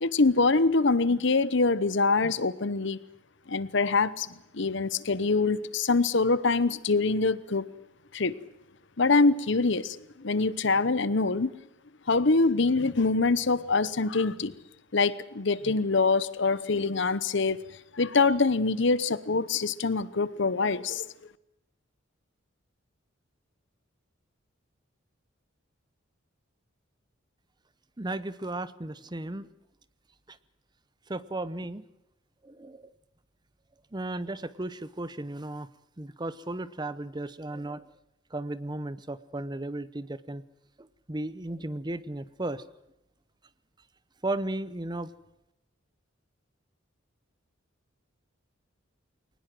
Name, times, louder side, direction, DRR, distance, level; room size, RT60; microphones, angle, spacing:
voice 1, 0.0-3.0 3.5-4.3 4.5-7.7 8.1-8.4 9.0-11.5 12.1-14.5 14.9-17.6 17.9-21.1, left 3 dB, 60° left, 17 dB, 0.9 m, -24 dB
voice 2, 28.0-29.5 30.3-30.4 31.1-31.8 32.4-32.9 33.9-35.7 36.0-37.9 38.3-40.4 40.8-42.6 44.2-45.1, right 2 dB, 20° right, 16 dB, 0.7 m, -35 dB
22.0 x 19.5 x 7.7 m, 0.87 s
head